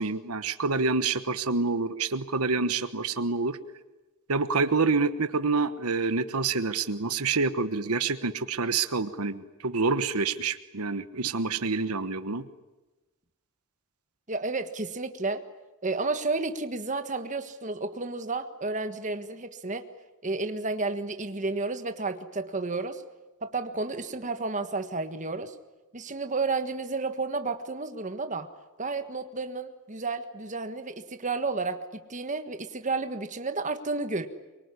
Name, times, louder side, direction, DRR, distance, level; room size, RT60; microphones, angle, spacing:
voice 1, 0.0-3.6 4.3-12.5, right 4 dB, 85° right, 11 dB, 1.2 m, -27 dB
voice 2, 14.3-15.4 15.8-19.8 20.2-23.0 23.4-25.5 25.9-28.5 28.8-34.3, right 3 dB, 35° right, 8 dB, 1.5 m, -31 dB
24.0 x 24.0 x 9.8 m, 1.2 s
head